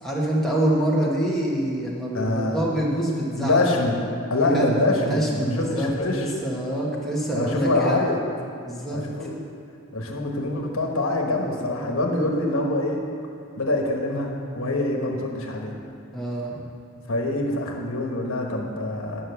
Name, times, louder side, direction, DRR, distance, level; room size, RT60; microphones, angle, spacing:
voice 1, 0.0-3.8 4.4-8.0 8.6-9.0 16.1-16.6, right 1 dB, ahead, -6 dB, 1.3 m, -26 dB
voice 2, 2.1-2.6 3.4-4.0 4.3-6.3 7.3-8.2 8.9-9.3 9.9-13.1 13.6-15.7 17.1-19.2, left 2 dB, 70° left, 0 dB, 1.2 m, -25 dB
9.7 x 6.0 x 6.9 m, 2.3 s
head